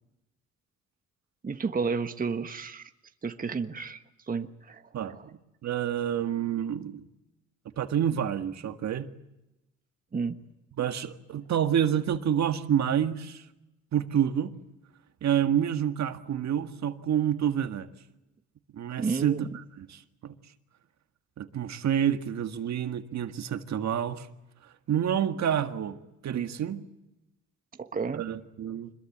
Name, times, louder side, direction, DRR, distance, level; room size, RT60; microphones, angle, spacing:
voice 1, 1.4-2.9 3.2-5.3 10.1-10.4 19.0-19.5 27.8-28.2, right 5 dB, 30° right, 1.4 m, -32 dB
voice 2, 5.6-7.0 7.8-9.1 10.8-13.5 13.9-14.5 15.2-17.9 18.7-19.5 19.8-20.3 21.4-24.3 24.9-26.0 26.2-26.8 28.1-28.9, right 9 dB, 65° right, 1.8 m, -28 dB
26.0 x 21.0 x 8.7 m
cardioid pair, 90°, 30 cm